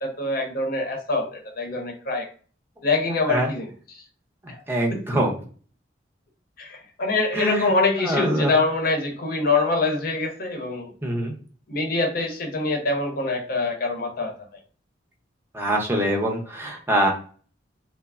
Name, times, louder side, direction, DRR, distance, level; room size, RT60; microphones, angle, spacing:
voice 1, 0.0-2.3 2.8-4.0 4.5-4.6 4.9-5.2 6.6-10.9 11.7-14.3, left 3 dB, 50° left, 2 dB, 0.7 m, -25 dB
voice 2, 4.7-5.3 7.3-7.7 8.0-8.5 11.0-11.3 15.5-17.1, right 1 dB, 15° right, 0 dB, 0.6 m, -23 dB
3.2 x 2.0 x 2.3 m, 0.42 s
head